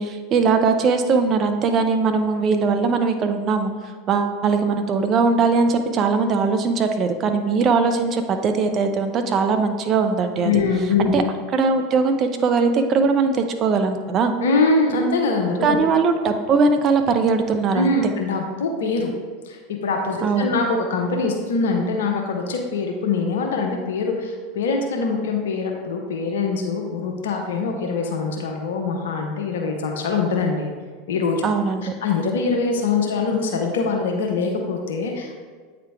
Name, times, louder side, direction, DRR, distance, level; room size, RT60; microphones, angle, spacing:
voice 1, 0.0-3.7 4.1-10.6 11.0-11.2 11.5-14.3 15.6-17.9 20.2-20.5 31.4-31.9, right 4 dB, 40° right, 7 dB, 0.7 m, -20 dB
voice 2, 10.4-11.2 14.4-15.8 17.7-19.1 19.4-30.7 31.1-31.4 32.0-35.3, left 4 dB, 75° left, 2 dB, 0.8 m, -23 dB
8.6 x 3.9 x 3.5 m, 1.5 s
hypercardioid pair, 90°, 0 cm